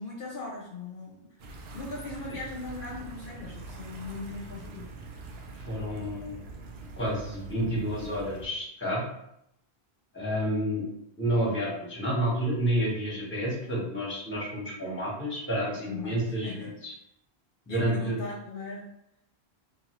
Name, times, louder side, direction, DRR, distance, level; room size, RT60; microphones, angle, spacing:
voice 1, 0.0-1.4 1.7-4.9 13.6-13.7 15.9-16.8 17.7-18.9, left 3 dB, 65° left, -3 dB, 0.7 m, -39 dB
sound 1, 1.4-8.5, right 2 dB, 90° right, 0.8 m, -43 dB
voice 2, 5.7-6.4 7.0-9.0 10.1-10.8 11.2-16.9 17.7-18.2, equal, 10° left, -5 dB, 0.9 m, -30 dB
2.7 x 2.6 x 2.9 m, 0.78 s
omnidirectional pair, 1.0 m